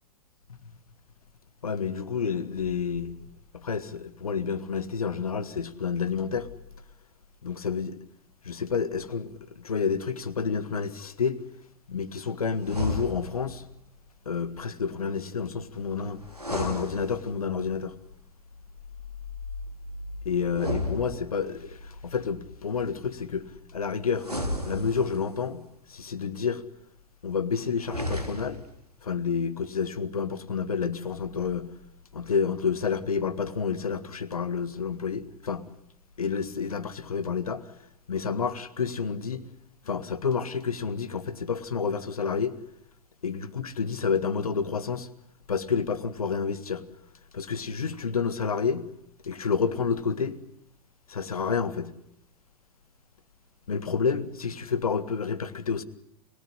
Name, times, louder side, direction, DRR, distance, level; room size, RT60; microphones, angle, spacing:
voice 1, 1.6-3.2 3.5-6.5 7.5-7.9 8.4-11.4 11.9-13.6 14.3-16.2 16.5-17.9 20.3-23.5 23.7-24.3 24.6-25.6 25.9-26.6 27.2-28.6 29.0-31.7 32.1-35.6 36.2-37.6 38.1-39.4 39.9-42.5 43.2-45.1 45.5-46.8 47.3-48.9 49.2-50.4 51.1-51.9 53.7-55.8, left 6 dB, 70° left, 1.8 m, -29 dB
sound 1, 12.6-13.6 16.3-17.6 20.5-21.7 24.2-25.4 27.8-28.7, left 1 dB, 90° right, 3.4 m, -33 dB
29.5 x 17.5 x 9.9 m
figure-of-eight pair, 100°, 19 cm